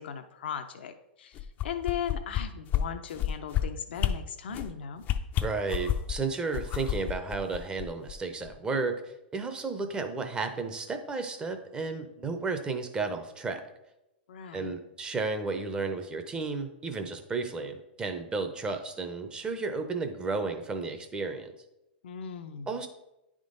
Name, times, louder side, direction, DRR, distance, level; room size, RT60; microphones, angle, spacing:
voice 1, 0.0-5.0 14.3-14.7 22.0-22.7, left 8 dB, 75° left, 7 dB, 0.6 m, -38 dB
sound 1, 1.3-2.4 2.7-2.8 3.1-3.6 4.0-4.1 4.5-4.7 5.0-6.1 6.5-8.1 8.5-8.6, left 13 dB, 30° left, 0.4 m, -28 dB
voice 2, 5.4-13.6 14.5-21.5 22.7-22.9, right 4 dB, 15° right, 7 dB, 0.7 m, -33 dB
9.6 x 3.7 x 3.9 m, 0.91 s
hypercardioid pair, 130°, 6 cm